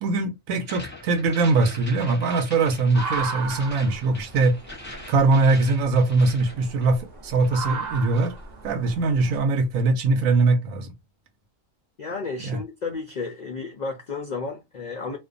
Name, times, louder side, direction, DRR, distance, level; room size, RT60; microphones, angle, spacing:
voice 1, 0.0-4.6 5.1-8.3 8.6-10.9 12.4-12.6, right 3 dB, 85° right, 1.0 m, -22 dB
sound 1, 0.6-7.1 7.4-8.4, left 1 dB, 10° left, 0.6 m, -42 dB
sound 2, 2.7-9.4, right 4 dB, 40° right, 0.7 m, -36 dB
voice 2, 12.0-15.2, left 4 dB, 70° left, 0.4 m, -32 dB
2.5 x 2.2 x 2.5 m
omnidirectional pair, 1.4 m